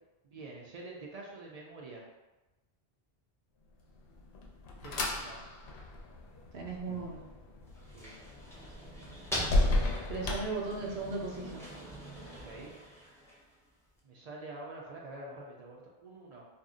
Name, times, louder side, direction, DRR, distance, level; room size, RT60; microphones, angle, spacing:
voice 1, 0.2-2.0 4.8-5.4 7.9-8.1 12.3-12.7 14.0-16.5, right 2 dB, 50° right, -2 dB, 0.5 m, -46 dB
sound 1, 3.9-11.3, left 2 dB, 90° left, 0.9 m, -34 dB
voice 2, 6.5-7.2 10.1-11.7, right 3 dB, 85° right, -1 dB, 0.9 m, -37 dB
sound 2, 7.6-13.7, equal, 5° left, 0.3 m, -43 dB
2.6 x 2.0 x 3.6 m, 1.0 s
omnidirectional pair, 1.0 m